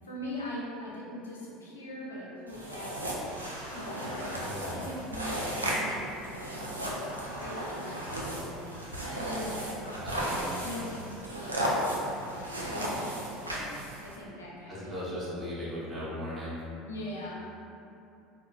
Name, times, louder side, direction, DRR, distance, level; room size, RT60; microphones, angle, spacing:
voice 1, 0.0-2.9 3.7-10.3 10.6-15.1 16.8-17.6, left 1 dB, 75° left, -5 dB, 0.6 m, -42 dB
sound 1, 2.5-14.2, equal, 85° right, 0.4 m, -35 dB
voice 2, 4.4-4.8 9.9-10.7 14.7-16.6, equal, 20° right, -11 dB, 1.1 m, -37 dB
4.0 x 2.8 x 2.3 m, 2.7 s
figure-of-eight pair, 70°, 0 cm